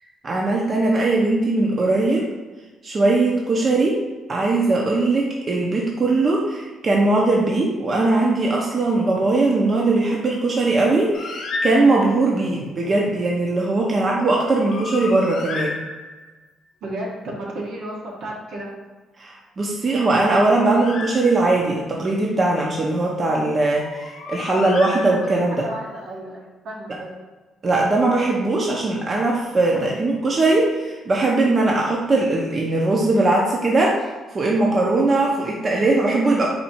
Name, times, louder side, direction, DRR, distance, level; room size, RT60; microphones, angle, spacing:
voice 1, 0.2-2.3 2.8-4.0 4.3-15.8 19.2-25.6 26.9-27.0 27.6-34.0 34.3-36.5, right 2 dB, 40° right, -2 dB, 0.7 m, -20 dB
Bird, 11.1-12.3 14.4-16.5 19.9-21.8 23.7-25.6, left 3 dB, 80° left, 0.6 m, -33 dB
voice 2, 12.5-13.1 16.8-18.7 24.4-27.2 29.7-29.9, right 1 dB, 75° right, -3 dB, 1.2 m, -34 dB
4.2 x 2.6 x 4.3 m, 1.2 s
cardioid pair, 90°, 0 cm